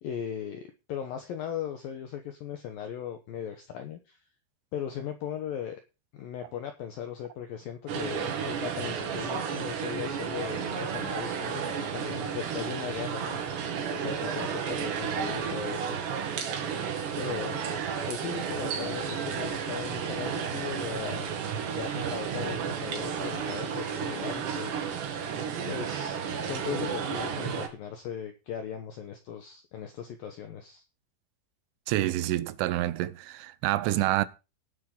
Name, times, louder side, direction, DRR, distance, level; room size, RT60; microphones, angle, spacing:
voice 1, 0.0-4.2 4.7-5.8 6.1-16.0 17.2-17.6 18.1-21.3 21.8-25.1 25.7-30.8, left 9 dB, 80° left, 2.1 m, -38 dB
sound 1, 7.9-27.7, right 7 dB, 65° right, 3.9 m, -32 dB
voice 2, 31.9-34.3, right 15 dB, 85° right, 3.2 m, -27 dB
18.5 x 7.9 x 3.8 m
omnidirectional pair, 5.6 m